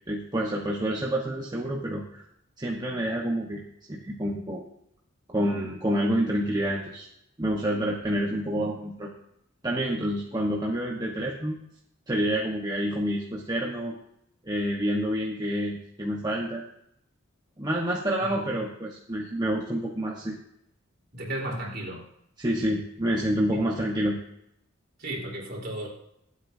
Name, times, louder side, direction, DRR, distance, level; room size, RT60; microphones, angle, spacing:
voice 1, 0.1-2.2 2.6-3.6 3.9-4.6 5.3-7.1 7.4-9.1 9.6-11.6 12.1-13.9 14.4-16.6 17.6-20.4 22.4-24.2, equal, 20° right, -2 dB, 1.2 m, -28 dB
voice 2, 21.1-22.1 23.5-23.6 25.0-25.9, right 1 dB, 50° right, -2 dB, 3.9 m, -34 dB
24.5 x 8.3 x 2.7 m, 0.76 s
head